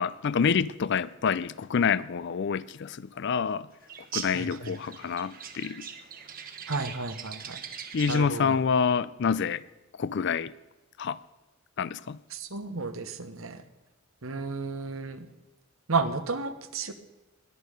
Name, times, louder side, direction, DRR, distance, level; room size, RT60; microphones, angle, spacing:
voice 1, 0.0-3.7 4.1-5.9 7.9-9.6 10.0-10.5 11.0-11.2 11.8-12.2, left 6 dB, 60° left, 0.5 m, -27 dB
sound 1, 3.9-8.4, right 7 dB, 45° right, 1.4 m, -41 dB
voice 2, 4.3-4.7 6.7-7.6 8.1-8.6 12.3-13.6 14.2-15.3 15.9-16.9, right 4 dB, 80° right, 1.2 m, -32 dB
21.0 x 8.6 x 5.2 m
head